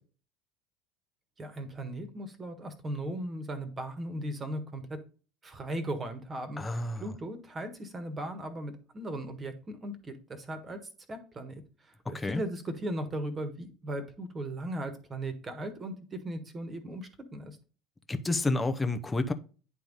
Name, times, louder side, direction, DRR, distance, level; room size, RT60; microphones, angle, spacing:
voice 1, 1.4-4.8 5.4-6.6 7.0-10.8 11.1-11.5 12.1-17.5, right 1 dB, 25° right, 1.5 m, -37 dB
voice 2, 6.6-7.1 12.1-12.4 18.1-19.3, left 2 dB, 15° left, 0.8 m, -29 dB
10.0 x 3.5 x 4.0 m
figure-of-eight pair, 65°, 0 cm